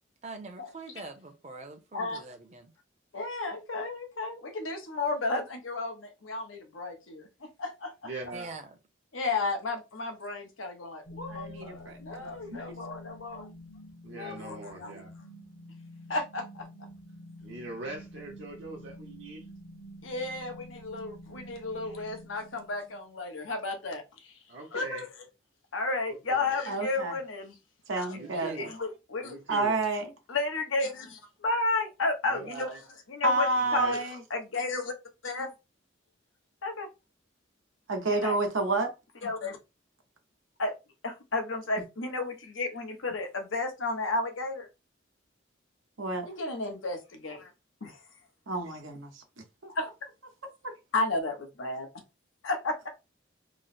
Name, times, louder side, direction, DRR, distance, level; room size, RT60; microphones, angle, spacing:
voice 1, 0.2-2.7 8.3-8.8 28.2-28.7, right 3 dB, 35° right, 0.6 m, -44 dB
voice 2, 3.1-8.1 9.1-13.5 14.0-15.0 16.1-16.7 20.0-24.3 24.7-25.1 25.7-27.6 28.0-28.2 28.5-29.4 30.3-32.7 33.1-34.9 35.2-35.5 36.6-36.9 38.2-38.4 39.2-39.6 40.6-40.7 41.0-44.7 46.2-47.5 47.8-48.0 49.7-49.9 50.9-51.9 52.4-52.9, left 3 dB, 85° left, 0.9 m, -33 dB
voice 3, 8.0-8.5 14.0-15.1 17.4-19.4 24.5-25.0 26.1-26.5 28.1-28.7 29.2-29.8 32.3-32.8 33.6-34.0, right 2 dB, 65° right, 0.8 m, -41 dB
sound 1, 11.0-23.0, left 1 dB, 45° left, 0.7 m, -48 dB
voice 4, 11.3-12.6 26.7-27.1 27.9-28.6 29.5-30.1 33.2-34.2 37.9-38.9 46.0-46.3 48.5-49.2 50.6-50.7, right 2 dB, 90° right, 0.9 m, -29 dB
3.1 x 2.0 x 4.1 m
head